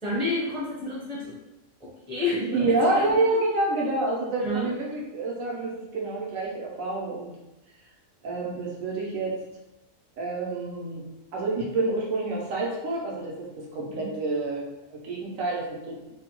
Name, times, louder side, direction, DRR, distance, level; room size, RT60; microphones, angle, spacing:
voice 1, 0.0-1.3 2.1-3.1 4.4-4.7 13.9-14.1, left 2 dB, 5° left, -7 dB, 0.5 m, -29 dB
voice 2, 2.5-7.3 8.2-9.4 10.2-11.0 11.3-14.6 14.9-16.0, right 2 dB, 80° right, -3 dB, 1.1 m, -28 dB
2.7 x 2.1 x 2.9 m, 0.99 s
omnidirectional pair, 1.4 m